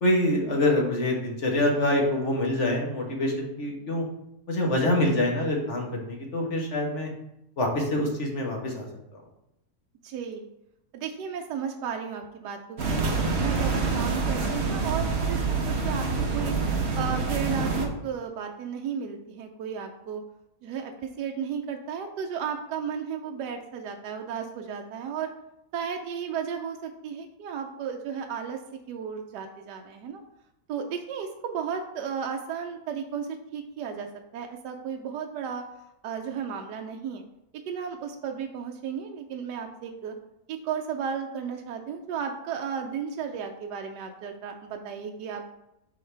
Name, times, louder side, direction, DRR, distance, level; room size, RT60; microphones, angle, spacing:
voice 1, 0.0-4.0 4.5-7.1 7.6-8.9, left 1 dB, 45° left, 0 dB, 1.5 m, -25 dB
voice 2, 10.0-10.5 10.9-13.1 13.4-16.6 17.0-20.2 20.6-25.3 25.7-28.6 28.9-30.2 30.7-34.1 34.3-35.6 36.0-37.2 37.7-40.1 40.5-45.5, right 7 dB, 85° right, 3 dB, 1.2 m, -34 dB
sound 1, 12.8-17.9, right 4 dB, 45° right, 1.1 m, -26 dB
10.0 x 3.8 x 3.3 m, 0.85 s
omnidirectional pair, 1.8 m